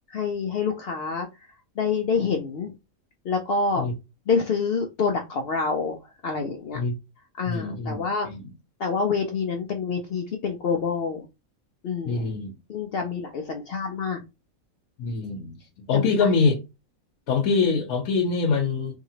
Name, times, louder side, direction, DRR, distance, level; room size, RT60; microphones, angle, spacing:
voice 1, 0.1-1.3 1.8-2.7 3.2-3.9 4.3-6.8 7.4-8.3 8.8-11.2 11.8-12.3 12.7-14.2 15.9-16.3, left 5 dB, 65° left, 0.6 m, -27 dB
voice 2, 7.5-8.4 12.0-12.5 15.0-16.6 17.3-19.0, left 4 dB, 90° left, 1.1 m, -24 dB
2.8 x 2.8 x 2.7 m
omnidirectional pair, 1.5 m